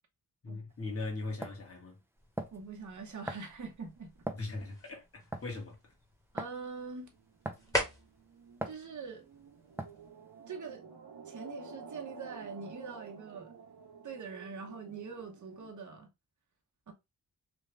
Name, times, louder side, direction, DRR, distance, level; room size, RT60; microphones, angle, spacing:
voice 1, 0.4-2.0 4.3-5.8, left 3 dB, 40° left, 1.4 m, -39 dB
sound 1, 0.7-0.8 1.4-1.6 2.4-2.7 3.3-3.6 4.3-4.5 5.3-5.6 6.4-6.6 7.5-7.8 8.6-8.8 9.8-10.1, right 1 dB, 5° right, 0.4 m, -39 dB
sound 2, 2.1-10.1, left 1 dB, 10° left, 1.2 m, -43 dB
voice 2, 2.5-4.3 6.3-7.1 8.6-9.2 10.5-10.9 11.3-13.5 14.0-16.1 16.9-17.0, right 5 dB, 50° right, 1.0 m, -43 dB
sound 3, 6.4-15.7, right 4 dB, 85° right, 0.8 m, -51 dB
3.4 x 2.3 x 3.2 m
wide cardioid pair, 105°, 37 cm